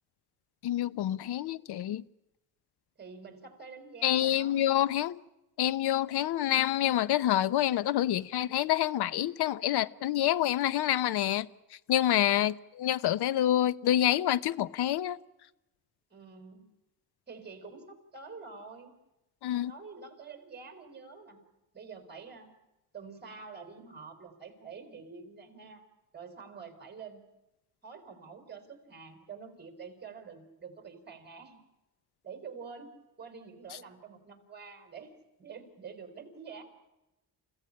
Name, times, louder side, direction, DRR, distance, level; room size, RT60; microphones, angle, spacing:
voice 1, 0.6-2.0 4.0-5.2 5.6-11.5 11.9-15.2 19.4-19.7, left 12 dB, 85° left, 0.9 m, -27 dB
voice 2, 3.0-4.7 16.1-16.6 17.3-18.9 19.7-21.4 21.7-22.5 22.9-25.8 26.1-27.2 27.8-31.6 32.2-32.9 33.2-36.6, right 5 dB, 25° right, 4.8 m, -47 dB
29.5 x 16.0 x 10.0 m
cardioid pair, 130°, 38 cm